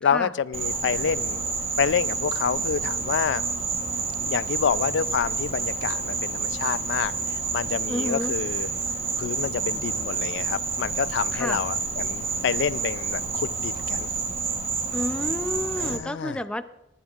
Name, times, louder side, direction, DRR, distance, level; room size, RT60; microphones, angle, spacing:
voice 1, 0.0-1.4 1.8-3.4 4.2-8.7 9.2-14.1 15.8-16.4, left 7 dB, 75° left, 18 dB, 0.4 m, -28 dB
Insect, 0.5-16.0, right 4 dB, 35° right, 1.1 m, -29 dB
voice 2, 7.9-8.3 11.3-11.6 14.9-16.6, left 1 dB, 5° left, 11 dB, 0.4 m, -30 dB
19.5 x 10.5 x 2.4 m, 0.93 s
head